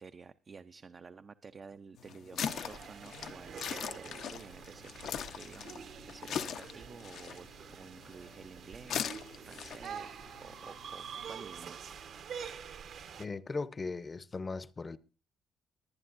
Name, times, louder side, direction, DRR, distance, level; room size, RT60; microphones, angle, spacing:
voice 1, 0.0-9.2 9.4-10.1 10.4-11.8, right 5 dB, 40° right, 0.5 m, -51 dB
sound 1, 2.0-11.7, left 8 dB, 75° left, 0.8 m, -42 dB
sound 2, 2.4-13.3, right 7 dB, 70° right, 1.2 m, -47 dB
voice 2, 13.2-15.0, left 3 dB, 30° left, 0.7 m, -38 dB
22.5 x 9.5 x 2.6 m
cardioid pair, 90°, 0 cm